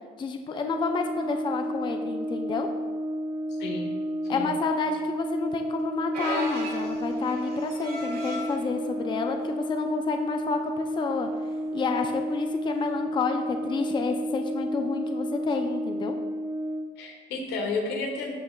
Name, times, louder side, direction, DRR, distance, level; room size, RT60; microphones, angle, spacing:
voice 1, 0.2-2.7 4.3-11.3 11.7-16.1, left 5 dB, 30° left, 5 dB, 0.5 m, -30 dB
Brass instrument, 0.6-17.0, equal, 25° right, 0.6 m, -31 dB
voice 2, 3.6-3.9 4.2-4.5 17.0-18.4, left 3 dB, 85° left, 2 dB, 1.3 m, -32 dB
sound 1, 6.1-8.6 9.4-9.6 9.9-10.0 11.0-11.2 12.8-12.9, right 1 dB, 65° right, 2.0 m, -35 dB
13.0 x 5.7 x 2.3 m, 1.5 s
cardioid pair, 110°, 17 cm